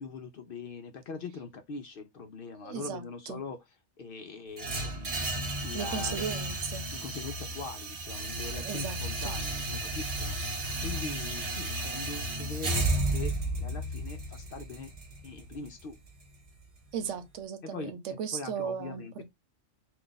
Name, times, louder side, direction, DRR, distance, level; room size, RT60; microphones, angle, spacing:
voice 1, 0.0-3.6 4.0-6.3 6.9-14.9 15.2-16.0 17.6-19.2, left 4 dB, 60° left, 0.6 m, -42 dB
voice 2, 2.6-3.4 5.7-6.9 8.5-9.4 16.9-19.2, right 7 dB, 80° right, 1.0 m, -37 dB
sound 1, 4.6-16.6, right 1 dB, 40° right, 0.5 m, -33 dB
2.4 x 2.4 x 3.7 m
omnidirectional pair, 1.3 m